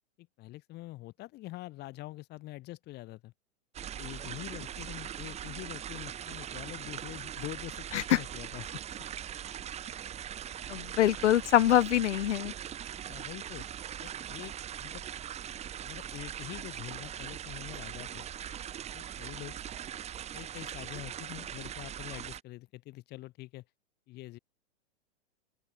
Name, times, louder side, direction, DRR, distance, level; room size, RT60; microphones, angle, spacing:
voice 1, 0.2-3.3 3.8-8.7 13.1-13.7 14.0-15.0 15.8-18.6 18.9-19.6 20.3-23.6 24.1-24.4, left 18 dB, 30° left, 2.3 m, -45 dB
sound 1, 3.7-22.4, right 10 dB, 20° right, 2.3 m, -41 dB
voice 2, 10.7-12.5, left 12 dB, 80° left, 1.1 m, -24 dB
open air
hypercardioid pair, 145°, 34 cm